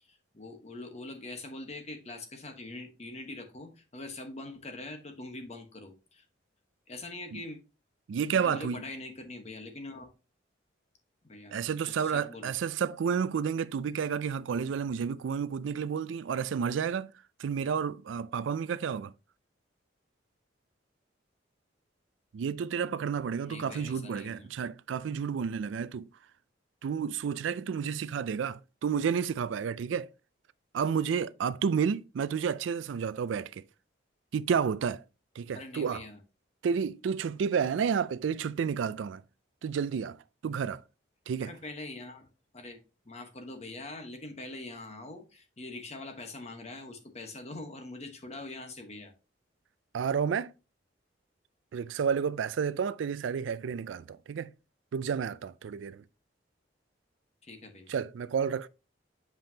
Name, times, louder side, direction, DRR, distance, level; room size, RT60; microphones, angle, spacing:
voice 1, 0.1-6.2 6.9-7.6 8.3-10.1 11.2-12.5 23.4-24.5 35.5-36.2 41.4-42.3 42.5-49.1 57.4-57.9, left 2 dB, 35° left, 1.1 m, -43 dB
voice 2, 8.1-8.9 11.5-17.1 17.4-19.1 22.3-26.1 26.8-30.1 30.7-33.6 34.3-35.0 35.4-36.0 36.6-39.2 39.6-40.2 40.4-40.8 41.3-41.5 49.9-50.5 51.7-54.5 54.9-56.0 57.9-58.7, right 7 dB, 80° right, 0.4 m, -31 dB
7.4 x 5.2 x 2.8 m
head